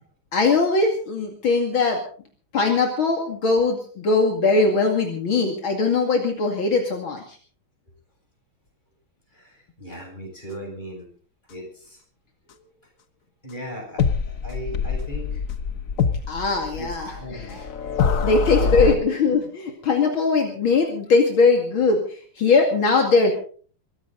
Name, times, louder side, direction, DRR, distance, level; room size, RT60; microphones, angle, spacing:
voice 1, 0.3-2.0 2.5-7.4 16.3-17.5 18.2-23.3, left 4 dB, 70° left, 2 dB, 3.1 m, -20 dB
voice 2, 9.3-11.1 11.5-12.0 13.4-15.4 16.7-17.6 18.2-19.1, equal, 20° left, 1 dB, 8.0 m, -37 dB
sound 1, 14.0-19.0, left 5 dB, 45° left, 1.3 m, -25 dB
23.0 x 15.5 x 3.9 m, 0.44 s
omnidirectional pair, 2.3 m